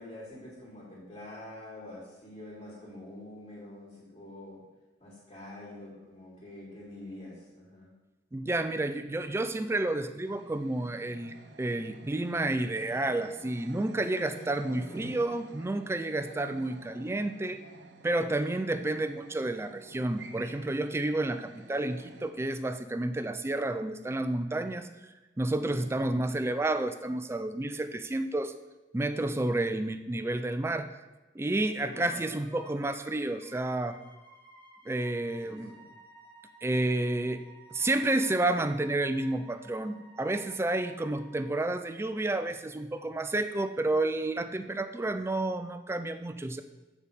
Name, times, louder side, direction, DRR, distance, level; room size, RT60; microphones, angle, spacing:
voice 1, 0.0-4.6 5.0-7.9 14.6-15.1 25.6-26.2 31.8-32.3 35.4-35.8, left 1 dB, 35° left, -8 dB, 2.7 m, -46 dB
voice 2, 8.3-17.6 18.0-24.9 25.4-28.5 28.9-30.9 31.4-34.0 34.9-35.7 36.6-37.4 37.7-46.6, right 2 dB, 15° right, 9 dB, 0.3 m, -30 dB
sound 1, 10.2-22.3, right 3 dB, 75° right, 0.7 m, -51 dB
Wind instrument woodwind instrument, 31.9-41.7, right 1 dB, 10° left, 1.3 m, -55 dB
8.3 x 4.1 x 5.1 m, 1.1 s
head